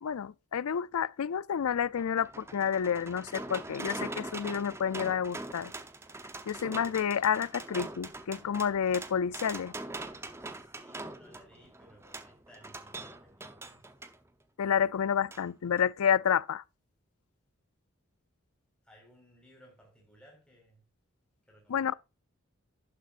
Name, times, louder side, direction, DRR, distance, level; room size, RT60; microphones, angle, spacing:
voice 1, 0.0-5.7 6.5-9.7 14.6-16.6 21.7-21.9, left 8 dB, 85° left, 0.4 m, -29 dB
sound 1, 1.6-14.2 15.3-15.4 15.8-15.9, right 2 dB, 10° right, 0.7 m, -43 dB
voice 2, 10.4-13.9 18.8-20.9 21.4-22.0, equal, 5° left, 4.6 m, -60 dB
11.5 x 10.0 x 2.5 m
head